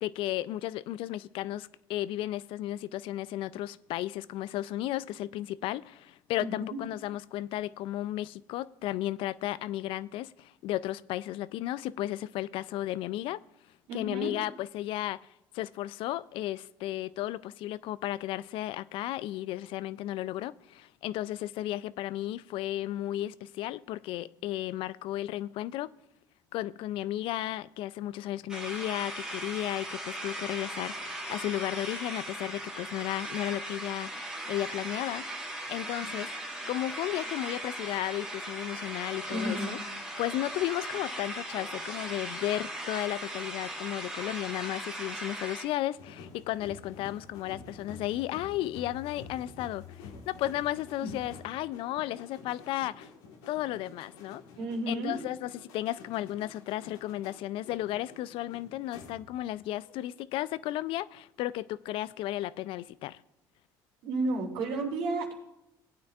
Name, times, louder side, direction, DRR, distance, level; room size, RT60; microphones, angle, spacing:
voice 1, 0.0-13.4 13.9-15.2 15.5-25.9 26.5-35.2 35.7-36.3 36.7-39.8 40.2-53.1 53.5-54.4 54.9-63.2, left 14 dB, 65° left, 0.4 m, -34 dB
voice 2, 6.4-6.8 13.9-14.4 39.3-39.8 51.0-51.1 54.6-55.2 64.0-65.3, right 2 dB, 75° right, 2.7 m, -32 dB
sound 1, 28.5-45.6, right 1 dB, 5° right, 1.9 m, -38 dB
sound 2, 46.0-59.5 59.8-60.2, left 4 dB, 85° left, 1.5 m, -49 dB
18.0 x 8.8 x 2.4 m
supercardioid pair, 75°, 10 cm